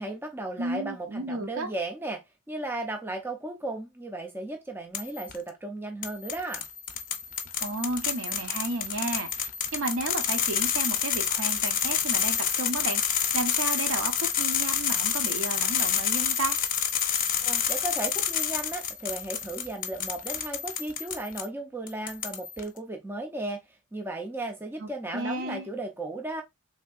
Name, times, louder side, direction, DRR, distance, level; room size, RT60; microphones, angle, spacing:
voice 1, 0.0-6.7 17.4-23.6 23.9-26.4, right 2 dB, 10° right, 0.4 m, -35 dB
voice 2, 0.6-1.7 7.6-16.6 24.8-25.7, right 2 dB, 60° right, 0.7 m, -33 dB
sound 1, 4.9-5.4 6.0-21.5 21.9-22.6, left 8 dB, 40° left, 0.5 m, -28 dB
3.4 x 2.6 x 2.4 m
head